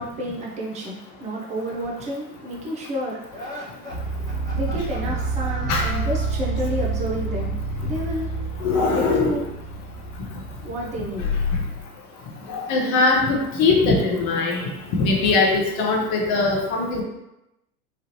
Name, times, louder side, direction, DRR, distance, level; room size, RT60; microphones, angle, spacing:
voice 1, 0.0-4.1 4.5-8.3 8.9-9.4 10.6-11.2, equal, 15° right, -2 dB, 0.5 m, -30 dB
sound 1, 3.3-6.8, left 1 dB, 10° left, 1.1 m, -39 dB
sound 2, 3.9-11.8, right 4 dB, 75° right, 1.2 m, -29 dB
voice 2, 8.6-9.4 12.5-14.6 14.9-17.0, left 3 dB, 40° left, -1 dB, 0.8 m, -21 dB
3.1 x 2.4 x 2.8 m, 0.92 s
figure-of-eight pair, 85°, 47 cm